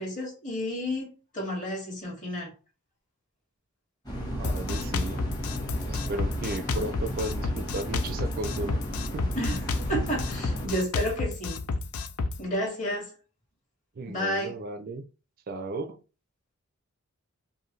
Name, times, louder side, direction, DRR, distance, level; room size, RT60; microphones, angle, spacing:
voice 1, 0.0-2.5 9.4-9.6 9.9-11.6 12.4-13.1 14.0-14.6, equal, 35° left, 1.9 m, -31 dB
sound 1, 4.1-10.7, equal, 20° left, 1.1 m, -34 dB
voice 2, 4.3-5.2 5.9-8.8 9.1-9.3 14.0-15.0 15.5-16.0, right 2 dB, 40° right, 0.4 m, -35 dB
Drum kit, 4.4-12.4, left 3 dB, 80° left, 0.5 m, -31 dB
4.9 x 2.6 x 3.1 m
head